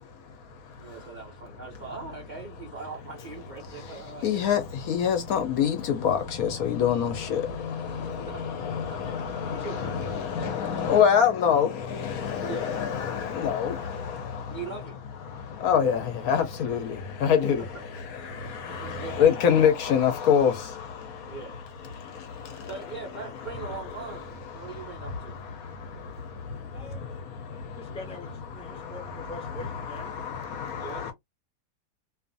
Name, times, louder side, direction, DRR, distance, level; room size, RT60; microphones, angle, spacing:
voice 1, 0.0-1.1 3.6-14.6 15.3-22.7 23.4-23.9 24.5-28.0 28.5-31.1, left 8 dB, 70° left, 1.0 m, -27 dB
voice 2, 0.8-4.4 7.8-8.4 8.9-9.0 9.5-10.3 12.4-12.7 14.5-15.0 17.7-17.8 18.7-19.4 21.3-21.5 22.7-25.4 30.7-31.0, right 5 dB, 75° right, 0.4 m, -41 dB
voice 3, 26.7-27.1 27.8-30.1, left 2 dB, 5° left, 0.4 m, -43 dB
2.5 x 2.4 x 2.5 m
omnidirectional pair, 1.8 m